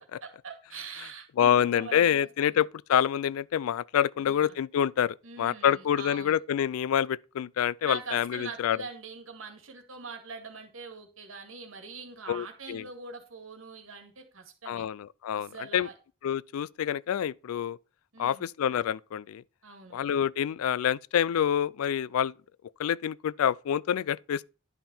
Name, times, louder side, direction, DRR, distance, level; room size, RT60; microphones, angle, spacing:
voice 1, 0.2-2.6 4.2-4.6 5.2-6.4 7.8-14.9 15.3-15.9 18.1-18.5 19.6-20.0, right 4 dB, 70° right, 2.0 m, -43 dB
voice 2, 1.4-8.8 12.3-12.9 14.7-15.9 16.2-17.8 18.2-19.4 19.9-22.3 22.8-24.5, left 9 dB, 85° left, 0.3 m, -27 dB
10.5 x 5.4 x 4.4 m
head